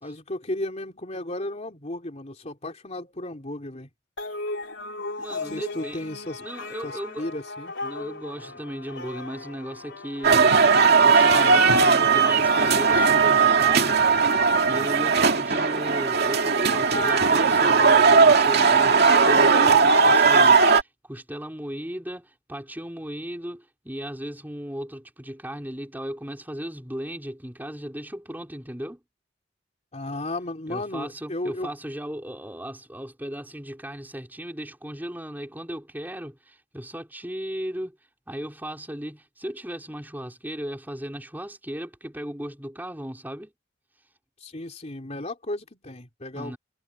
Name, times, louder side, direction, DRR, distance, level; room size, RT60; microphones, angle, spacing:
voice 1, 0.0-3.9 5.5-6.4 6.8-7.7 29.9-31.7 44.4-46.6, left 1 dB, 35° left, 3.3 m, -34 dB
sound 1, 4.2-14.0, left 2 dB, 65° left, 4.2 m, -38 dB
voice 2, 5.2-6.0 6.4-7.3 7.8-14.0 14.7-29.0 30.7-38.0 38.3-43.5 46.3-46.6, equal, 10° right, 4.5 m, -36 dB
sound 2, 10.2-20.8, right 5 dB, 55° right, 2.3 m, -18 dB
head